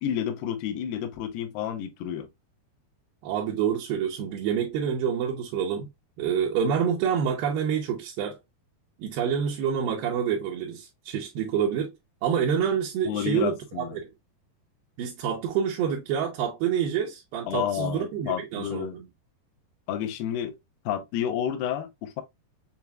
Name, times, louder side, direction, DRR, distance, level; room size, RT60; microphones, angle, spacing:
voice 1, 0.0-2.3 13.1-14.0 17.5-19.0 19.9-20.5 20.9-22.2, left 9 dB, 80° left, 2.1 m, -30 dB
voice 2, 3.2-5.9 6.2-8.4 9.0-11.9 12.2-14.0 15.0-19.0, right 8 dB, 75° right, 2.3 m, -27 dB
6.8 x 2.5 x 2.2 m
omnidirectional pair, 4.8 m